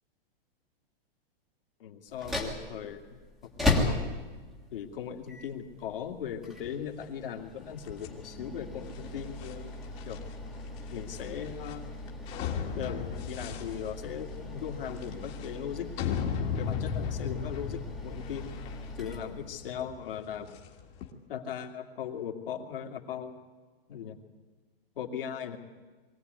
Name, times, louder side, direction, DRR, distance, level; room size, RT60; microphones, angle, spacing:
voice 1, 1.8-3.0 3.4-4.0 4.7-9.8 10.0-10.2 10.9-11.8 12.8-16.2 16.6-18.5 19.0-20.6 21.3-23.4 23.9-24.2 25.0-25.6, left 8 dB, 65° left, 3 dB, 2.5 m, -38 dB
sound 1, 2.1-19.9, left 2 dB, ahead, 1.6 m, -37 dB
sound 2, 7.8-21.1, left 7 dB, 25° left, 1.8 m, -37 dB
22.5 x 16.5 x 9.5 m, 1.4 s
supercardioid pair, 175°, 30 cm